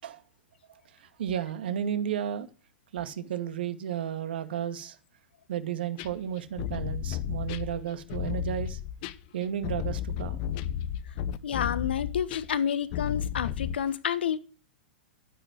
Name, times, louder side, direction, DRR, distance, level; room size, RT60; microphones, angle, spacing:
voice 1, 1.2-2.5 2.9-5.0 5.5-8.8 9.3-10.4, right 9 dB, 65° right, 2.1 m, -33 dB
sound 1, 6.0-13.8, left 10 dB, 50° left, 1.1 m, -33 dB
voice 2, 11.4-14.4, left 8 dB, 70° left, 1.3 m, -29 dB
13.0 x 10.0 x 6.6 m
figure-of-eight pair, 100°, 6 cm